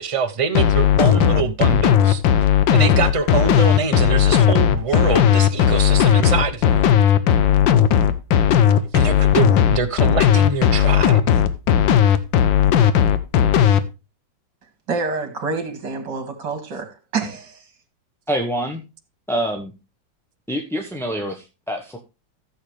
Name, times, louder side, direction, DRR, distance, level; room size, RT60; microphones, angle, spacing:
voice 1, 0.0-2.2 2.7-6.7 8.9-11.4, right 5 dB, 50° right, 0.3 m, -24 dB
sound 1, 0.6-13.8, left 9 dB, 90° left, 1.6 m, -15 dB
voice 2, 14.9-17.6, right 4 dB, 70° right, 2.8 m, -27 dB
voice 3, 18.3-18.8 19.3-19.7 20.5-22.0, equal, ahead, 0.8 m, -26 dB
14.0 x 7.1 x 3.3 m
omnidirectional pair, 2.0 m